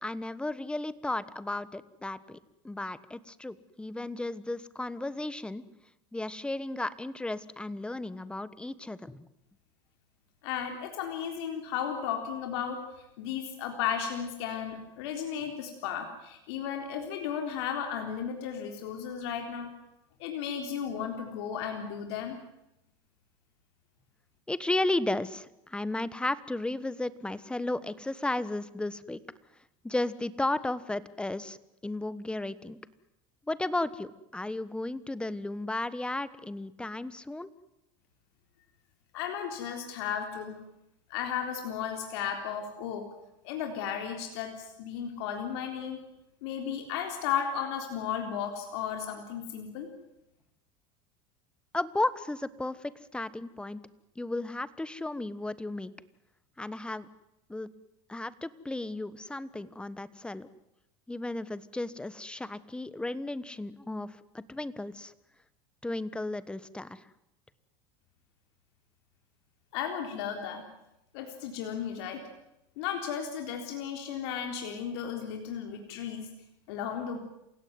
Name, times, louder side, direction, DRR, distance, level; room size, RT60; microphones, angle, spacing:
voice 1, 0.0-2.4 2.6-5.6 6.1-9.3 24.5-29.2 29.8-31.6 31.8-32.8 33.5-37.5 51.7-53.8 54.2-55.9 56.6-57.1 57.5-57.7 58.1-60.5 61.1-65.1 65.8-67.0, left 2 dB, 5° left, 16 dB, 1.3 m, -34 dB
voice 2, 10.4-19.7 20.2-22.4 39.1-40.6 41.1-43.1 43.4-46.0 46.4-49.9 69.7-70.7 71.1-72.2 72.8-76.3 76.7-77.2, left 8 dB, 75° left, 4 dB, 3.8 m, -34 dB
28.0 x 16.5 x 9.5 m, 0.86 s
supercardioid pair, 110°, 14 cm